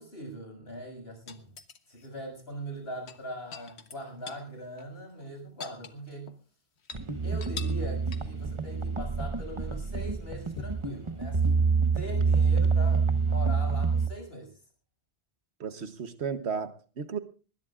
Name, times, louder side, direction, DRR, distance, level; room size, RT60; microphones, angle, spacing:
voice 1, 0.0-1.5 1.9-6.3 7.2-11.6 11.9-14.6, equal, 70° left, 3 dB, 6.8 m, -41 dB
sound 1, 1.3-2.1 3.0-4.5 4.8-4.9 5.2-6.4 6.8-7.0 7.4-7.9 8.1-8.4 10.6-10.9 12.6-12.7, left 5 dB, 85° left, 1.5 m, -44 dB
sound 2, 6.9-14.1, right 5 dB, 30° right, 1.1 m, -27 dB
voice 2, 15.6-17.2, right 6 dB, 85° right, 10 dB, 1.4 m, -34 dB
21.0 x 19.0 x 2.5 m, 0.36 s
omnidirectional pair, 1.1 m